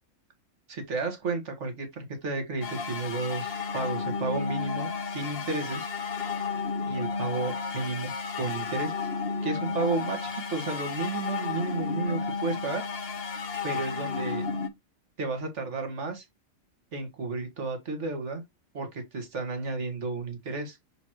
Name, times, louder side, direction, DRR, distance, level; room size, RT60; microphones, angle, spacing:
voice 1, 0.7-5.9 6.9-8.1 8.4-9.1 9.4-12.9 13.6-14.5 15.2-16.3 16.9-18.4 18.7-20.8, right 3 dB, 60° right, 2.0 m, -32 dB
sound 1, 2.6-14.7, left 5 dB, 50° left, 1.0 m, -32 dB
6.3 x 5.1 x 3.0 m
omnidirectional pair, 1.4 m